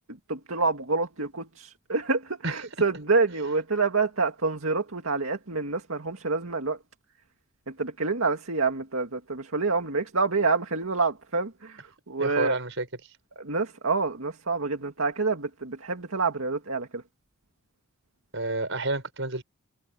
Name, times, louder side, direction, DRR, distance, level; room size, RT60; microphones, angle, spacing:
voice 1, 0.1-6.8 7.7-12.6 13.4-17.0, right 4 dB, 80° right, 2.1 m, -27 dB
voice 2, 12.2-12.9 18.3-19.4, right 2 dB, 60° right, 6.5 m, -29 dB
head